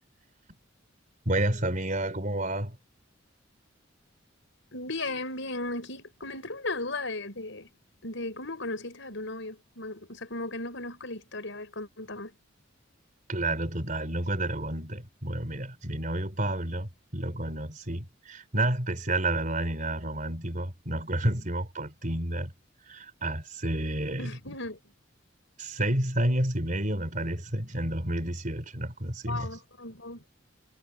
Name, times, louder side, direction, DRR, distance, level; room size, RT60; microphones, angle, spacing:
voice 1, 1.2-2.8 13.3-22.5 22.9-24.3 25.6-29.5, right 1 dB, 40° right, 4.5 m, -30 dB
voice 2, 4.7-7.7 8.0-12.4 24.2-24.8 29.3-30.2, left 2 dB, 65° left, 6.1 m, -36 dB
head